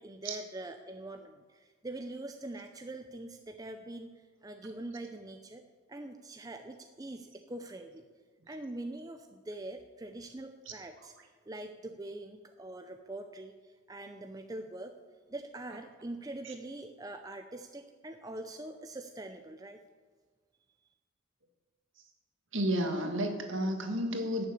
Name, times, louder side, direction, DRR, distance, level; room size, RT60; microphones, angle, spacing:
voice 1, 0.0-5.6 5.9-8.1 8.5-11.1 11.5-14.9 15.3-19.8, right 2 dB, 15° right, 6 dB, 0.5 m, -43 dB
voice 2, 22.5-24.4, equal, 65° right, 4 dB, 1.7 m, -31 dB
11.5 x 6.9 x 8.5 m, 1.4 s
head